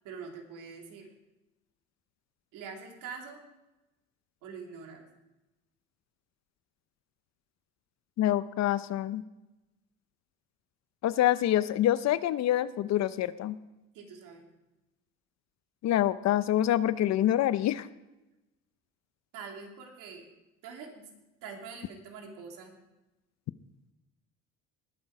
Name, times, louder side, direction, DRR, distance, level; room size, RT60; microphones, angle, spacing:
voice 1, 0.0-1.1 2.5-3.4 4.4-5.1 13.9-14.5 19.3-20.3 20.6-21.1 21.4-22.8, right 5 dB, 75° right, 1 dB, 2.9 m, -44 dB
voice 2, 8.2-9.2 11.0-13.6 15.8-17.9, left 12 dB, 55° left, 16 dB, 0.6 m, -26 dB
19.5 x 7.3 x 4.8 m, 0.99 s
supercardioid pair, 85°, 32 cm